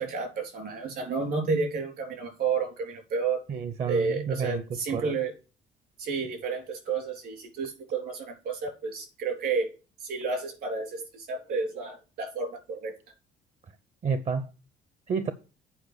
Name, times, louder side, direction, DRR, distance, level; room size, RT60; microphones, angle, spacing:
voice 1, 0.0-3.4 3.9-5.3 6.0-9.7 10.0-12.9, right 4 dB, 70° right, 3.6 m, -31 dB
voice 2, 3.5-5.1 14.0-14.5 15.1-15.3, right 6 dB, 45° right, 0.7 m, -30 dB
8.5 x 4.7 x 6.6 m
cardioid pair, 110°, 17 cm